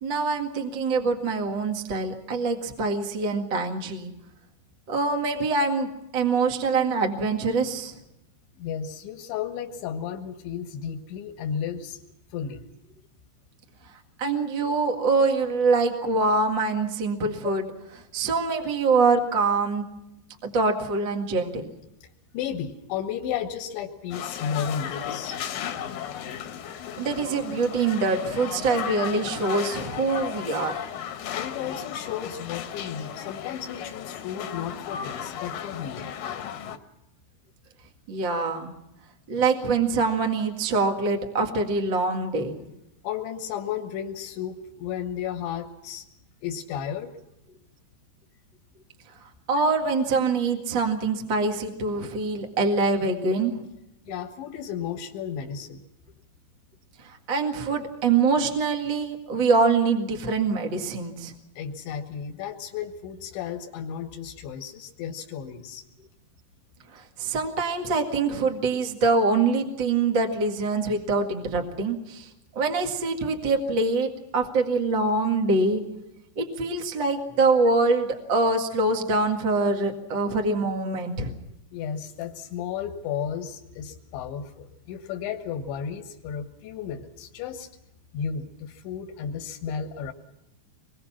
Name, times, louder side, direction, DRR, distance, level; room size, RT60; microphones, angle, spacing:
voice 1, 0.0-4.1 4.9-5.9 6.1-8.0 14.2-17.6 18.1-19.9 20.4-21.7 27.0-30.7 38.1-38.7 39.3-42.6 49.5-53.6 57.3-61.3 66.9-72.3 72.5-75.8 76.3-81.3, right 3 dB, 45° right, 3 dB, 1.5 m, -24 dB
voice 2, 8.6-12.0 12.3-12.6 17.4-17.5 22.3-25.4 31.3-36.1 43.0-46.0 46.4-47.1 54.1-55.8 61.6-65.8 81.7-87.7 88.1-90.1, left 8 dB, 80° left, 4 dB, 3.8 m, -33 dB
sound 1, 24.1-36.8, left 9 dB, 65° left, 2.5 m, -35 dB
25.5 x 23.0 x 5.9 m, 0.87 s
omnidirectional pair, 5.2 m